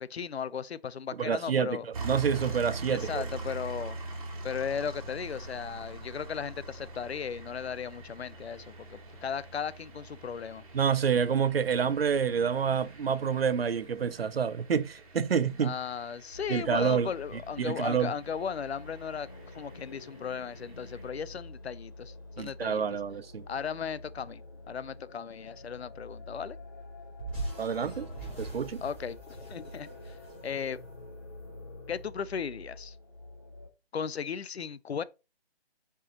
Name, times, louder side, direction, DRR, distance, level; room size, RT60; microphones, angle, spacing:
voice 1, 0.0-1.9 2.9-4.0 4.4-10.6 15.6-19.3 19.5-22.8 23.5-24.4 24.7-26.6 28.8-30.2 30.4-30.8 31.9-33.0 33.9-35.0, left 7 dB, 85° left, 0.6 m, -36 dB
voice 2, 1.2-3.2 10.7-15.8 16.5-17.1 17.6-18.1 22.4-23.4 27.6-28.1 28.4-28.8, right 7 dB, 70° right, 0.7 m, -28 dB
sound 1, 1.9-21.1, right 3 dB, 35° right, 1.7 m, -43 dB
sound 2, 16.3-33.7, left 2 dB, 20° left, 0.6 m, -48 dB
sound 3, 27.2-31.6, right 2 dB, 5° left, 2.4 m, -41 dB
5.8 x 4.7 x 4.0 m
hypercardioid pair, 165°, 31 cm